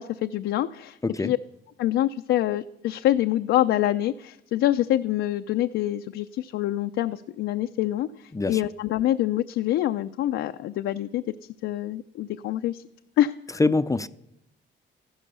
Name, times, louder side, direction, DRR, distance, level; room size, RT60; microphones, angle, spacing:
voice 1, 0.0-1.0 1.2-1.4 1.8-11.2 11.6-12.8 13.2-13.6, left 13 dB, 85° left, 0.5 m, -26 dB
voice 2, 1.0-1.3 8.3-8.6 13.6-14.1, left 3 dB, 15° left, 0.5 m, -24 dB
14.5 x 12.0 x 6.7 m
cardioid pair, 90°, 20 cm